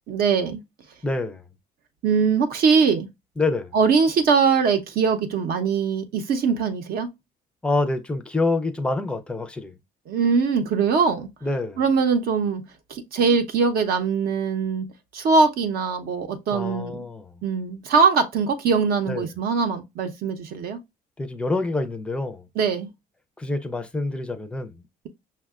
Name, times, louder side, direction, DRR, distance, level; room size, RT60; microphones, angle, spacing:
voice 1, 0.1-0.6 2.0-3.1 3.7-7.1 10.1-11.3 11.8-12.6 12.9-14.9 15.1-17.1 17.4-20.8 22.6-22.9, right 5 dB, 65° right, 0.6 m, -22 dB
voice 2, 1.0-1.4 3.4-3.8 7.6-9.8 11.4-11.8 16.5-17.3 19.1-19.3 21.2-22.5 23.4-24.7, left 2 dB, 5° left, 0.4 m, -26 dB
5.5 x 2.1 x 2.3 m
cardioid pair, 110°, 17 cm